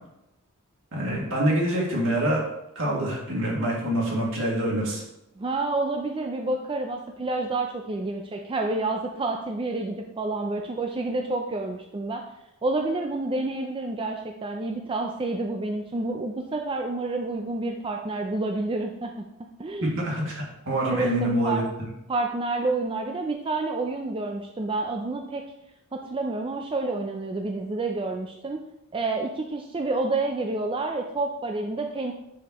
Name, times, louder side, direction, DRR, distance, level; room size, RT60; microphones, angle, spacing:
voice 1, 0.9-2.4 2.8-5.0 19.9-21.6, right 1 dB, 60° right, -3 dB, 2.3 m, -25 dB
voice 2, 5.4-12.2 12.6-19.3 19.6-20.0 20.9-21.6 22.1-25.4 25.9-28.6 28.9-32.1, right 2 dB, 25° right, 3 dB, 0.4 m, -29 dB
9.9 x 5.0 x 3.0 m, 0.88 s
head